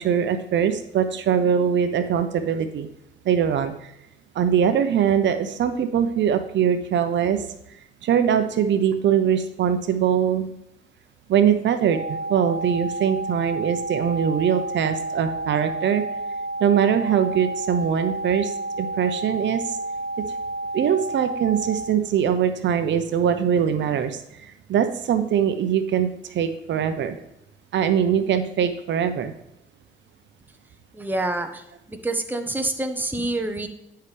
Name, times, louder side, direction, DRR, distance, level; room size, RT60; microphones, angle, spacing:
voice 1, 0.0-2.9 3.2-3.9 4.3-10.5 11.3-16.0 16.6-19.8 20.7-27.2 27.7-29.3, right 8 dB, 65° right, 9 dB, 0.7 m, -22 dB
sound 1, 11.9-21.9, right 2 dB, 50° right, 1.9 m, -30 dB
voice 2, 30.9-31.6 31.9-33.7, right 2 dB, 10° right, 5 dB, 0.9 m, -27 dB
9.9 x 5.7 x 3.3 m, 0.85 s
cardioid pair, 90°, 20 cm